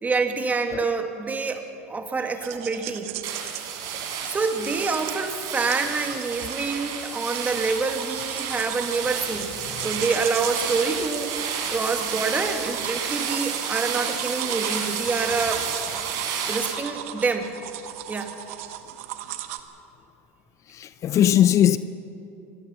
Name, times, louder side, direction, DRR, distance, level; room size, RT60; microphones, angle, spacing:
voice 1, 0.0-3.1 4.2-15.6 16.5-17.5 18.1-18.4, right 4 dB, 20° right, 2.2 m, -27 dB
sound 1, 2.4-19.6, right 12 dB, 75° right, 1.3 m, -38 dB
sound 2, 3.2-16.7, right 7 dB, 60° right, 4.6 m, -31 dB
voice 2, 20.7-21.8, left 11 dB, 45° left, 0.6 m, -19 dB
25.0 x 18.5 x 5.8 m
supercardioid pair, 95°, 7 cm